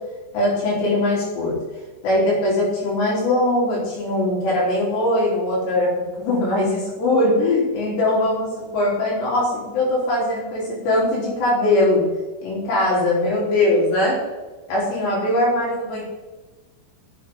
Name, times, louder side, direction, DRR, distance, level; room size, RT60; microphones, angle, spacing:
voice 1, 0.3-1.6 2.0-12.1 12.4-14.2 14.7-16.0, left 1 dB, 75° left, -5 dB, 5.8 m, -21 dB
16.5 x 7.8 x 3.7 m, 1.2 s
omnidirectional pair, 5.0 m